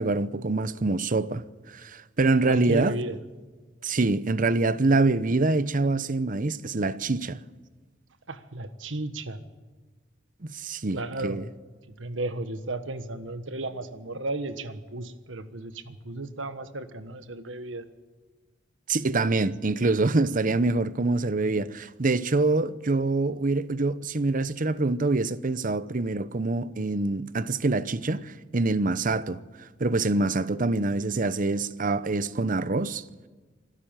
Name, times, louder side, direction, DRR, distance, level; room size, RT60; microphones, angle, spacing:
voice 1, 0.0-1.4 1.7-2.9 3.8-7.4 10.5-11.4 18.9-29.4 29.8-33.0, right 3 dB, 45° right, 0.8 m, -25 dB
voice 2, 2.4-3.2 8.3-9.4 10.9-11.4 12.0-17.8, right 2 dB, 90° right, 1.4 m, -34 dB
25.5 x 12.5 x 9.0 m
head